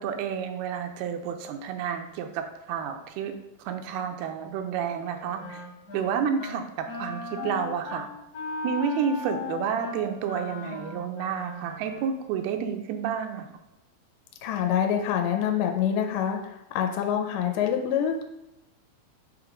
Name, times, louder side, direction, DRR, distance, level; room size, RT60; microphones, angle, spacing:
voice 1, 0.0-3.3 3.6-5.6 5.9-8.1 8.6-13.5, right 7 dB, 85° right, 5 dB, 2.6 m, -30 dB
Wind instrument woodwind instrument, 4.9-6.1 6.4-6.6 6.9-12.1, left 3 dB, 55° left, 2.1 m, -37 dB
voice 2, 14.4-18.2, left 9 dB, 90° left, 4 dB, 2.5 m, -26 dB
6.5 x 3.0 x 4.9 m, 0.91 s
omnidirectional pair, 4.4 m